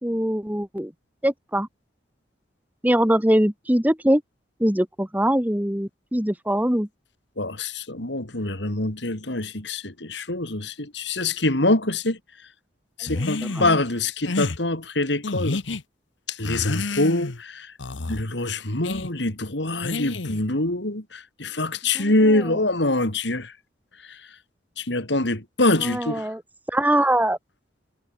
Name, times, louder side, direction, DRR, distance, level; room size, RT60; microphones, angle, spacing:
voice 1, 0.0-0.9 1.2-1.7 2.8-4.2 4.6-6.9 13.0-13.3 13.6-13.8 22.0-22.1 25.8-26.4 26.7-27.4, right 1 dB, 10° right, 2.1 m, -22 dB
voice 2, 7.4-12.2 13.0-15.6 16.3-17.7 18.1-23.5 24.0-24.2 24.8-26.3, left 2 dB, 70° left, 3.3 m, -25 dB
sound 1, 13.1-13.7 14.2-14.6 15.2-15.8 16.4-17.4 17.8-18.2 18.8-19.1 19.8-20.4, left 3 dB, 85° left, 1.1 m, -29 dB
head